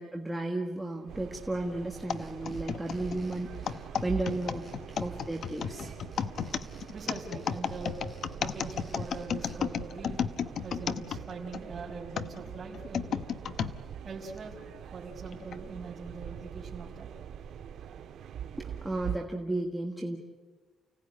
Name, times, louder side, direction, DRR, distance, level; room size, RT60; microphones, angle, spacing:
voice 1, 0.0-4.7 5.0-5.9 18.6-20.2, right 2 dB, 5° right, 0 dB, 1.5 m, -34 dB
sound 1, 1.1-19.2, right 8 dB, 60° right, 1.6 m, -43 dB
sound 2, 1.9-9.6, equal, 20° left, 7.8 m, -55 dB
sound 3, 2.1-11.6 12.2-13.7 14.4-14.5 15.3-15.6, left 7 dB, 50° left, 1.0 m, -33 dB
voice 2, 6.9-8.0 8.4-10.2 10.6-13.2 14.0-14.6 14.9-17.1, right 4 dB, 30° right, -3 dB, 5.3 m, -42 dB
30.0 x 17.5 x 9.8 m, 1.4 s
cardioid pair, 170°, 0 cm